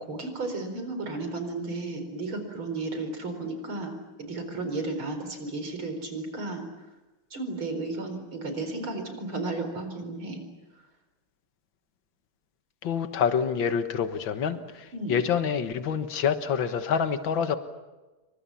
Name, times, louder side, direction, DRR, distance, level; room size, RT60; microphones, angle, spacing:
voice 1, 0.1-6.6 7.3-10.4 14.9-15.2, right 2 dB, 80° right, 7 dB, 5.2 m, -33 dB
voice 2, 12.8-17.6, left 7 dB, 70° left, 9 dB, 2.2 m, -27 dB
28.5 x 24.5 x 7.1 m, 1.1 s
omnidirectional pair, 2.2 m